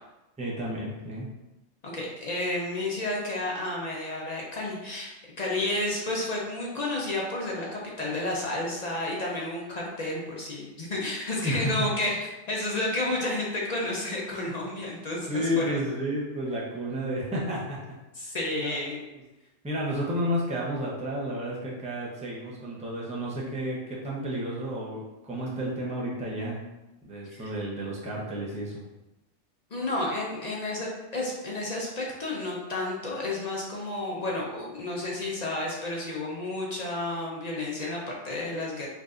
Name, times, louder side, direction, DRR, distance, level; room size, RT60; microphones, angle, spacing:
voice 1, 0.4-1.3 11.4-11.9 15.3-17.8 18.6-18.8 19.6-26.6 27.0-28.8, equal, 10° right, -5 dB, 0.5 m, -31 dB
voice 2, 1.8-5.1 5.4-12.2 12.5-15.8 18.1-19.1 27.4-27.5 29.7-38.9, left 2 dB, 45° left, -3 dB, 0.6 m, -31 dB
4.6 x 2.6 x 2.4 m, 1.0 s
omnidirectional pair, 1.3 m